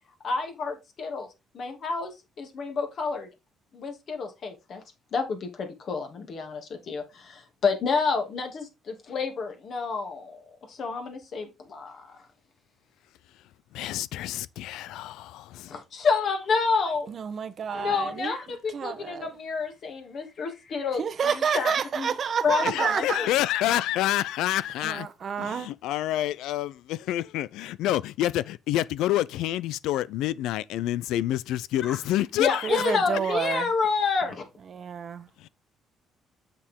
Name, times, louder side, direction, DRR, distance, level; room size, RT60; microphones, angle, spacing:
voice 1, 0.2-1.3 1.5-3.3 3.7-4.8 5.1-10.4 10.7-12.2 15.7-17.1 17.7-22.1 22.4-23.3 31.8-32.0 32.3-34.4, left 4 dB, 50° left, 2.6 m, -29 dB
voice 2, 13.7-15.8 22.6-25.1 25.4-33.0 35.4-35.5, left 13 dB, 90° left, 0.5 m, -28 dB
voice 3, 17.1-18.4 18.7-19.3 21.0-23.3 24.8-25.7 32.6-33.7 34.7-35.3, right 7 dB, 45° right, 1.0 m, -29 dB
7.2 x 6.8 x 3.7 m
cardioid pair, 130°, 0 cm